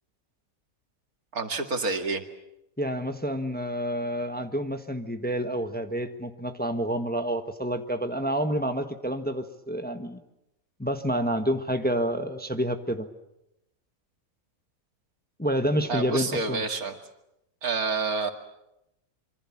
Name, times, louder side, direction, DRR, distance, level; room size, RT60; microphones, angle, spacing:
voice 1, 1.3-2.2 15.9-17.0 17.6-18.3, right 3 dB, 80° right, 5 dB, 2.6 m, -28 dB
voice 2, 2.8-10.2 10.8-13.1 15.4-16.6, equal, 5° left, 7 dB, 1.3 m, -28 dB
26.0 x 24.5 x 7.4 m, 0.86 s
omnidirectional pair, 1.5 m